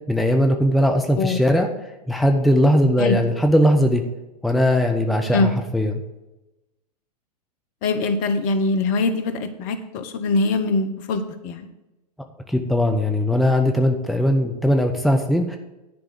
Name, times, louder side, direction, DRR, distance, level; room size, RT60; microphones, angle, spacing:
voice 1, 0.1-1.7 2.1-4.0 4.4-6.0 12.5-15.6, equal, ahead, 3 dB, 0.8 m, -19 dB
voice 2, 7.8-11.7, left 3 dB, 40° left, 9 dB, 1.0 m, -22 dB
10.5 x 5.3 x 6.8 m, 0.98 s
figure-of-eight pair, 95°, 21 cm